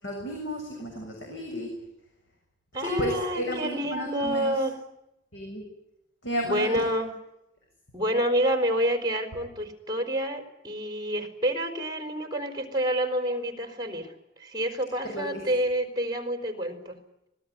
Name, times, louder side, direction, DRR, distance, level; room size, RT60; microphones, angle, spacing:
voice 1, 0.0-1.7 2.8-4.5 5.3-5.6 6.2-6.9 15.1-15.3, equal, 85° left, 1 dB, 7.2 m, -32 dB
voice 2, 2.7-4.8 6.4-7.1 7.9-14.1 14.4-17.0, equal, 20° right, 6 dB, 4.4 m, -28 dB
25.5 x 20.0 x 10.0 m, 0.87 s
head